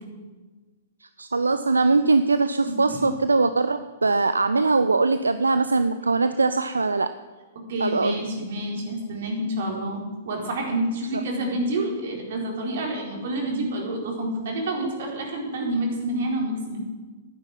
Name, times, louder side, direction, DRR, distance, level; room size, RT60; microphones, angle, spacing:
voice 1, 1.2-7.1 7.8-8.3, right 3 dB, 85° right, 11 dB, 0.5 m, -21 dB
voice 2, 2.6-3.1 7.7-16.8, right 1 dB, 60° right, 0 dB, 4.4 m, -28 dB
11.0 x 9.8 x 9.2 m, 1.3 s
figure-of-eight pair, 110°, 0 cm